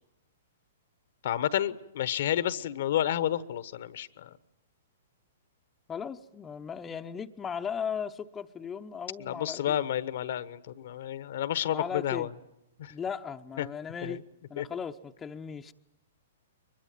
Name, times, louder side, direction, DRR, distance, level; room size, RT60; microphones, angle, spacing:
voice 1, 1.2-4.4 9.2-12.3 12.8-12.9 13.6-13.7 14.0-14.2 14.6-14.7, left 11 dB, 60° left, 15 dB, 1.2 m, -30 dB
voice 2, 5.9-9.9 11.7-12.3 12.9-14.2 14.5-15.7, left 7 dB, 15° left, 6 dB, 0.9 m, -37 dB
23.5 x 21.5 x 9.3 m, 0.88 s
hypercardioid pair, 115°, 0 cm